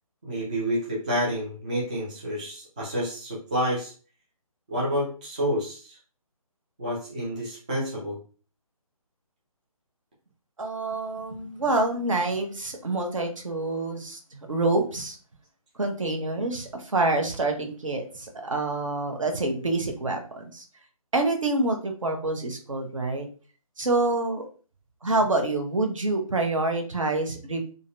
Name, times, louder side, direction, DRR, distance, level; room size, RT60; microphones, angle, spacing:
voice 1, 0.2-3.9 4.7-6.0 6.8-8.2, equal, 15° right, -5 dB, 0.4 m, -29 dB
voice 2, 10.6-15.2 15.8-20.6 21.1-23.3 23.8-24.5 25.0-27.7, right 2 dB, 60° right, 4 dB, 0.9 m, -27 dB
3.9 x 2.1 x 2.5 m, 0.38 s
figure-of-eight pair, 145°, 19 cm